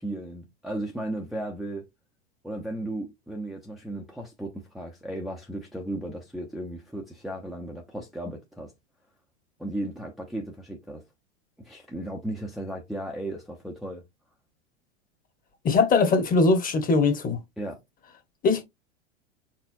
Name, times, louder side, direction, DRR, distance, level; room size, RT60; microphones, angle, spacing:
voice 1, 0.0-1.9 2.4-8.7 9.6-11.0 11.6-14.0 17.6-17.8, right 1 dB, ahead, 0.7 m, -35 dB
voice 2, 15.6-17.4 18.4-18.6, left 3 dB, 25° left, 1.3 m, -21 dB
4.5 x 3.4 x 2.6 m
hypercardioid pair, 100°, 34 cm